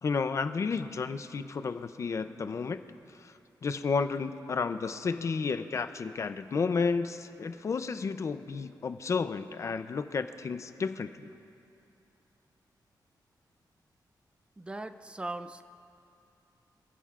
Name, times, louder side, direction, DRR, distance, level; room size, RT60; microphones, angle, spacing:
voice 1, 0.0-2.8 3.2-3.3 3.6-11.3, left 5 dB, 40° left, 10 dB, 0.5 m, -32 dB
voice 2, 14.6-15.6, right 2 dB, 15° right, 9 dB, 0.5 m, -39 dB
28.5 x 16.0 x 2.4 m, 2.7 s
wide cardioid pair, 180°, 8 cm